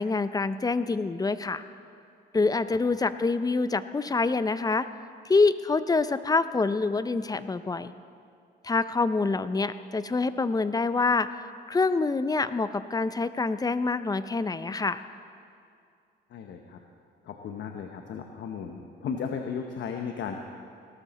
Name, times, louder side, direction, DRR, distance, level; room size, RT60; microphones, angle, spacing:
voice 1, 0.0-1.6 2.3-4.9 5.2-7.9 8.6-11.3 11.7-15.0, left 3 dB, 20° left, 13 dB, 0.5 m, -26 dB
voice 2, 16.3-16.8 17.2-20.4, left 6 dB, 70° left, 4 dB, 1.0 m, -35 dB
18.5 x 13.0 x 4.2 m, 2.4 s
cardioid pair, 90°, 20 cm